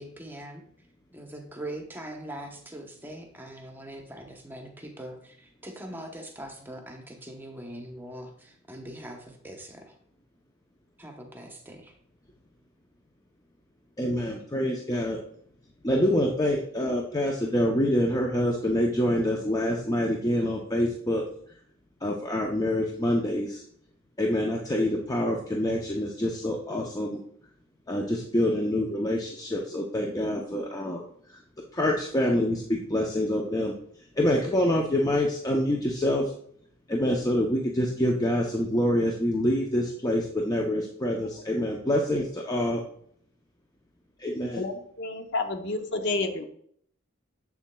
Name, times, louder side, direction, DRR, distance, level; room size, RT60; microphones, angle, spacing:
voice 1, 0.0-10.0 11.0-11.9, right 1 dB, 10° right, 3 dB, 0.8 m, -42 dB
voice 2, 14.0-15.2 15.8-21.2 22.0-23.6 24.2-27.2 27.9-31.0 31.7-33.7 34.2-36.3 36.9-42.8 44.2-44.6, left 1 dB, 20° left, 0 dB, 0.6 m, -26 dB
voice 3, 44.6-46.4, left 3 dB, 60° left, 6 dB, 0.7 m, -30 dB
7.2 x 7.0 x 2.2 m, 0.63 s
head